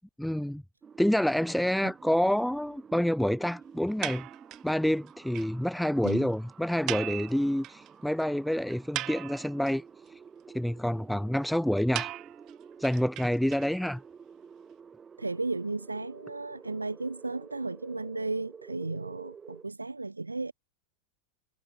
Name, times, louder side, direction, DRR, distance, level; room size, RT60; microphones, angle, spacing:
voice 1, 0.2-0.6 1.0-4.3 4.6-9.8 10.5-12.1 12.8-14.0, equal, ahead, 0.7 m, -28 dB
sound 1, 0.8-19.6, right 6 dB, 20° right, 1.5 m, -51 dB
sound 2, 4.0-4.7 5.1-5.2 5.3-5.5 5.8-5.9 6.0-6.2 6.9-7.9 8.2-8.3 8.7-9.7 11.9-13.9, right 16 dB, 35° right, 1.3 m, -37 dB
voice 2, 15.2-20.5, right 3 dB, 80° right, 0.6 m, -34 dB
figure-of-eight pair, 90°, 0 cm